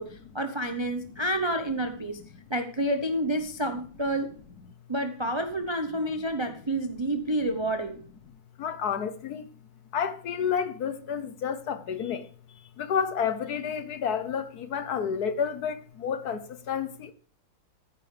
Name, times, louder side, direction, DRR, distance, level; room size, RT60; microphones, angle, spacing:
voice 1, 0.0-2.2 2.5-4.4 4.9-8.0, right 1 dB, 45° right, 0.3 m, -29 dB
voice 2, 8.6-9.5 9.9-12.3 12.8-17.1, left 7 dB, 60° left, 1.2 m, -30 dB
14.5 x 9.6 x 3.3 m
omnidirectional pair, 2.2 m